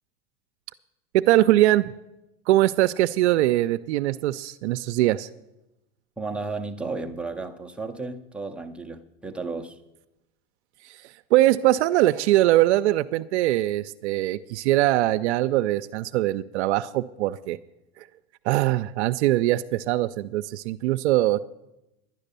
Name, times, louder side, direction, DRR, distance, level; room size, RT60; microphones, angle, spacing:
voice 1, 1.1-1.9 2.5-5.3 10.8-17.6 18.0-18.1 18.4-21.4, right 15 dB, 85° right, 9 dB, 0.5 m, -22 dB
voice 2, 6.2-9.8, right 3 dB, 5° right, 3 dB, 0.4 m, -33 dB
10.5 x 9.9 x 6.7 m, 0.94 s
supercardioid pair, 140°, 33 cm